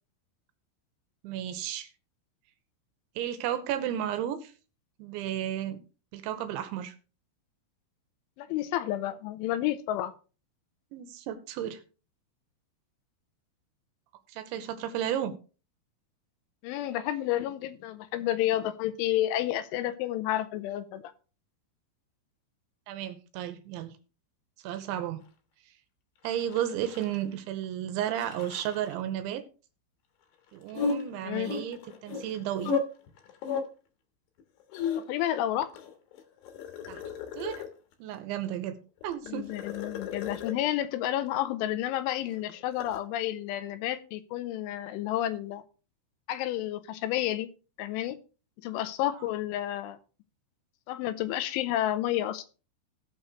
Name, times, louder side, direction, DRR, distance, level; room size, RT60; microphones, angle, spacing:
voice 1, 1.2-1.9 3.2-4.5 5.0-5.8 6.1-6.9 10.9-11.8 14.3-15.4 22.9-23.9 24.6-25.2 26.2-29.4 30.5-32.7 36.9-37.0 37.3-37.6 38.0-38.8 39.0-39.5, right 11 dB, 80° right, 9 dB, 3.2 m, -33 dB
voice 2, 8.4-10.1 16.6-21.1 31.2-31.5 35.1-35.7 39.3-45.6 46.3-47.5 47.8-48.2 48.6-50.0 50.9-52.4, left 13 dB, 85° left, 12 dB, 3.2 m, -30 dB
sound 1, 26.3-27.4 27.6-27.7 28.1-28.9 30.7-32.8 33.1-33.6 34.4-35.3 35.7-37.9 39.0-40.6 42.3-43.0, left 5 dB, 70° left, 3.1 m, -35 dB
17.5 x 6.4 x 3.1 m, 0.34 s
omnidirectional pair, 5.5 m